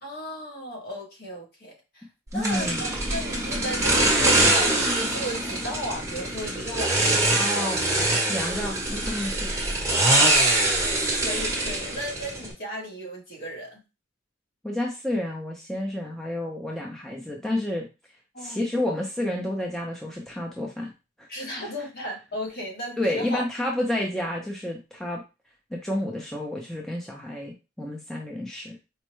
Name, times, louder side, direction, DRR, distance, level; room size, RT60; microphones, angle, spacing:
voice 1, 0.0-2.0 2.3-7.7 10.2-13.8 18.3-18.7 21.3-23.4, equal, 50° left, -1 dB, 1.2 m, -35 dB
voice 2, 2.3-2.8 7.3-7.8 8.3-9.5 14.6-17.9 18.4-20.9 21.2-21.3 21.6-21.7 23.0-25.2 25.7-28.8, left 1 dB, ahead, -2 dB, 0.5 m, -30 dB
sound 1, 2.4-12.5, right 1 dB, 15° right, 1.0 m, -24 dB
4.4 x 2.1 x 3.0 m, 0.28 s
head